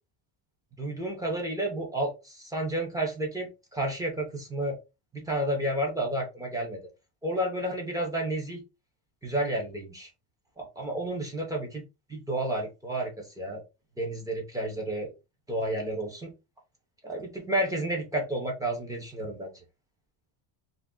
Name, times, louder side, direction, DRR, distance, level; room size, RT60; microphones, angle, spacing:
voice 1, 0.8-4.8 5.1-6.8 7.2-8.6 9.2-10.1 10.6-11.8 12.1-13.6 14.0-15.1 15.5-16.3 17.0-19.6, right 1 dB, 10° right, 0 dB, 0.4 m, -31 dB
2.5 x 2.4 x 3.5 m, 0.26 s
cardioid pair, 170°, 49 cm